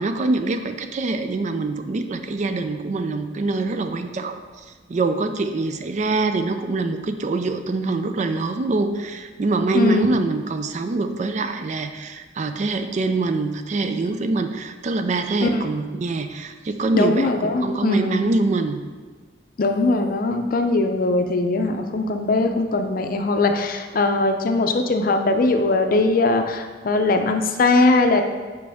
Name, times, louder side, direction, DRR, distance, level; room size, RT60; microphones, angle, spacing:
voice 1, 0.0-4.4 4.9-18.8, right 3 dB, 40° right, 8 dB, 0.4 m, -24 dB
voice 2, 9.7-10.2 15.4-15.7 16.9-18.2 19.6-28.2, left 2 dB, 50° left, 6 dB, 0.5 m, -20 dB
7.5 x 4.7 x 3.5 m, 1.4 s
head